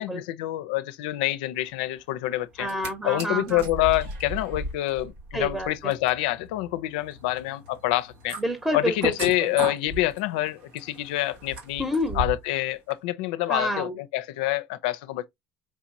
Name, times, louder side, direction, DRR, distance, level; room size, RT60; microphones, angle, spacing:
voice 1, 0.0-2.7 3.0-8.4 8.7-11.8 12.1-15.2, left 16 dB, 90° left, 0.4 m, -27 dB
sound 1, 2.5-2.9 3.2-12.6 12.9-13.0, right 1 dB, 80° right, 1.1 m, -36 dB
voice 2, 2.6-3.7 5.3-5.9 8.4-9.6 11.8-12.2 13.5-14.0, equal, 5° right, 0.9 m, -29 dB
4.7 x 2.9 x 2.6 m
supercardioid pair, 95°, 5 cm